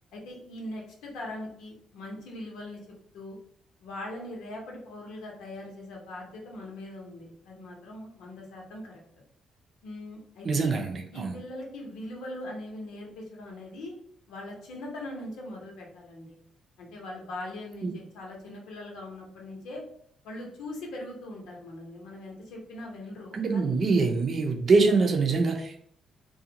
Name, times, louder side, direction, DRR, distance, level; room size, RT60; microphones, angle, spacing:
voice 1, 0.1-2.8 3.1-3.4 3.8-9.0 9.8-10.7 11.1-13.9 14.3-16.4 16.8-19.8 20.2-23.8, left 1 dB, 90° left, -1 dB, 0.9 m, -41 dB
voice 2, 10.4-11.4 17.8-18.0 23.3-25.9, right 4 dB, 50° right, 3 dB, 0.6 m, -24 dB
2.5 x 2.3 x 2.8 m, 0.66 s
cardioid pair, 90°, 0 cm